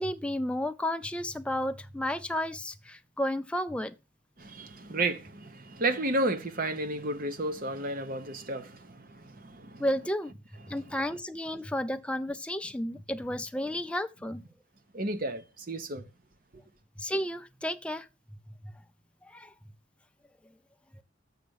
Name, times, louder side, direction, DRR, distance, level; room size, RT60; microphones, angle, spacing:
voice 1, 0.0-3.9 9.8-10.3 10.7-14.4 17.0-18.1 19.2-19.5, left 1 dB, 5° left, 0.4 m, -32 dB
voice 2, 4.4-9.8 10.7-10.8 14.9-16.1, right 2 dB, 45° right, 0.9 m, -32 dB
6.8 x 6.5 x 6.3 m
head